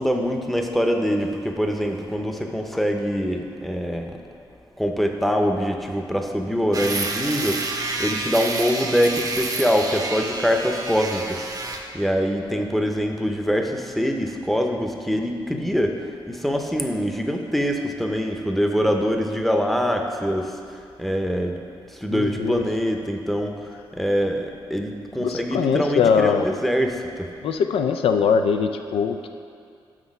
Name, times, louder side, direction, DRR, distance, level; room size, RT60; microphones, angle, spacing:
voice 1, 0.0-4.2 4.8-20.6 21.0-21.6 21.9-23.7 24.0-27.3, equal, ahead, 3 dB, 0.7 m, -24 dB
sound 1, 6.7-11.9, right 3 dB, 40° right, 0.7 m, -29 dB
voice 2, 22.1-22.7 25.2-26.5 27.4-29.3, left 6 dB, 75° left, 7 dB, 0.4 m, -22 dB
6.1 x 5.7 x 5.3 m, 2.3 s
cardioid pair, 70°, 10 cm